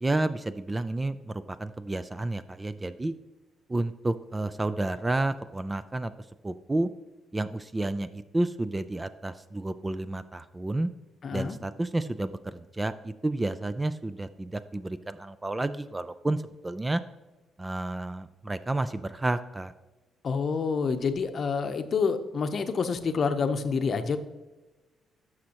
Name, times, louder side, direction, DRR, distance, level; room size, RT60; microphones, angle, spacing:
voice 1, 0.0-3.1 3.7-6.1 6.4-6.9 7.3-10.9 11.3-17.0 17.6-19.7, right 2 dB, 15° right, 13 dB, 0.3 m, -30 dB
voice 2, 11.2-11.6 20.2-24.2, left 5 dB, 50° left, 8 dB, 0.7 m, -28 dB
11.5 x 6.3 x 2.9 m, 1.1 s
cardioid pair, 90°, 0 cm